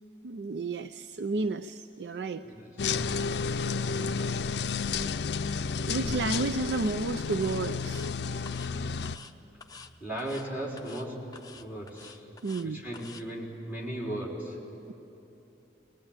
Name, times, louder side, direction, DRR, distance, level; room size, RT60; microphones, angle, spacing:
voice 1, 0.2-2.4 5.9-8.1 12.4-12.8, right 3 dB, 75° right, 10 dB, 0.5 m, -31 dB
voice 2, 2.4-4.4 5.9-6.3 10.0-12.2 12.6-14.6, right 1 dB, 10° right, -3 dB, 4.2 m, -38 dB
sound 1, 2.8-9.2, left 5 dB, 70° left, 0.5 m, -31 dB
sound 2, 5.6-5.8 6.1-6.4 6.7-7.0 7.3-8.1 8.5-8.7 9.0-9.3 9.6-9.9 10.2-10.5 10.8-11.1 11.3-12.7 12.9-13.2, left 5 dB, 20° left, 0.7 m, -49 dB
22.0 x 20.5 x 8.9 m, 2.9 s
head